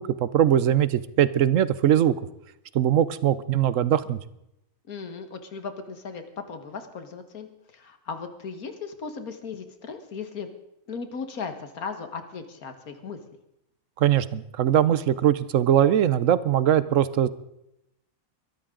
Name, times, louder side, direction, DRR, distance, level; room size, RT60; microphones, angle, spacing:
voice 1, 0.0-2.1 2.7-4.2 14.0-17.3, right 10 dB, 65° right, 16 dB, 1.0 m, -21 dB
voice 2, 4.9-10.5 10.9-13.2, left 5 dB, 90° left, 8 dB, 2.0 m, -37 dB
23.0 x 13.0 x 3.8 m, 0.83 s
omnidirectional pair, 1.5 m